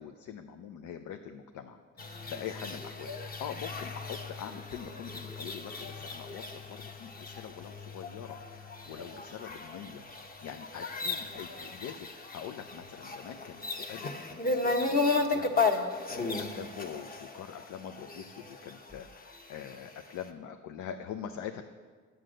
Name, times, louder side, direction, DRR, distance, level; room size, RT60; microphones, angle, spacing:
voice 1, 0.0-10.0 10.4-21.6, left 8 dB, 85° left, 6 dB, 0.6 m, -44 dB
sound 1, 2.0-19.8, left 3 dB, 30° left, 1.0 m, -35 dB
9.6 x 7.8 x 6.3 m, 1.5 s
cardioid pair, 90°, 30 cm